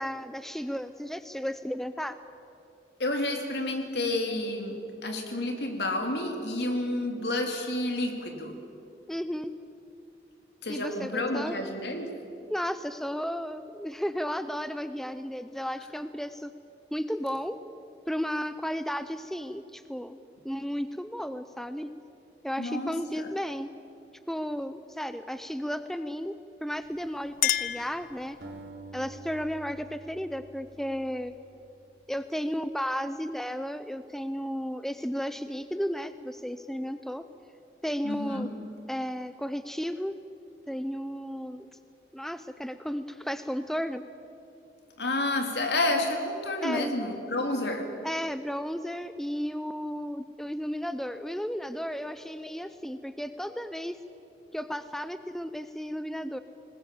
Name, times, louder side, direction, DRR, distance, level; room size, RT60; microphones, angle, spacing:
voice 1, 0.0-2.2 9.1-9.5 10.7-11.6 12.5-16.5 16.9-17.6 18.1-21.9 22.4-23.7 24.3-26.3 26.6-28.4 28.9-31.3 32.1-37.2 37.8-38.5 38.9-40.1 40.7-41.7 42.1-44.0 46.6-46.9 48.0-54.0 54.5-56.4, equal, ahead, 11 dB, 0.5 m, -33 dB
voice 2, 3.0-8.6 10.6-12.1 22.6-23.3 38.0-38.5 45.0-47.9, left 2 dB, 75° left, 3 dB, 3.0 m, -30 dB
Chink clink, 26.8-28.7, left 12 dB, 50° left, 0.5 m, -31 dB
sound 1, 28.4-31.6, right 2 dB, 65° right, 3.2 m, -47 dB
20.5 x 20.0 x 8.5 m, 2.7 s
head